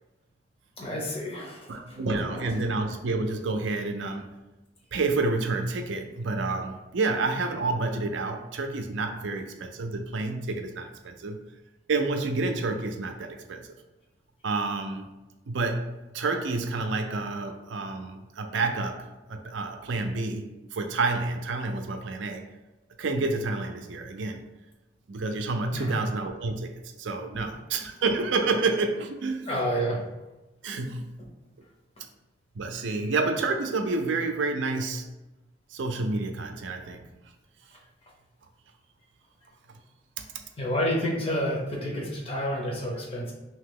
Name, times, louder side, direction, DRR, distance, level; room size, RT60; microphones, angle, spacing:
voice 1, 0.8-1.6 25.7-25.9 27.3-27.5 29.5-30.0 40.6-43.3, equal, 30° left, -2 dB, 0.7 m, -29 dB
voice 2, 1.7-4.4 4.9-11.4 11.9-13.7 14.4-15.1 15.5-22.5 23.0-24.4 25.1-29.5 30.6-31.2 32.5-35.2 35.7-37.0 39.7-39.8 40.2-40.3, right 3 dB, 85° right, 5 dB, 0.4 m, -29 dB
2.9 x 2.8 x 3.7 m, 1.0 s
head